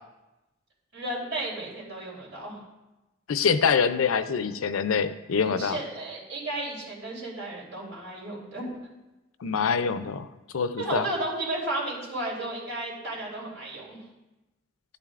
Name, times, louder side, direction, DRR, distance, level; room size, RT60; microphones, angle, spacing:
voice 1, 0.9-2.6 5.4-8.8 10.8-14.0, right 1 dB, 75° right, -4 dB, 3.4 m, -33 dB
voice 2, 3.3-5.8 9.4-10.3 10.5-11.0, left 6 dB, 85° left, 12 dB, 0.5 m, -25 dB
11.5 x 9.0 x 2.5 m, 1.0 s
head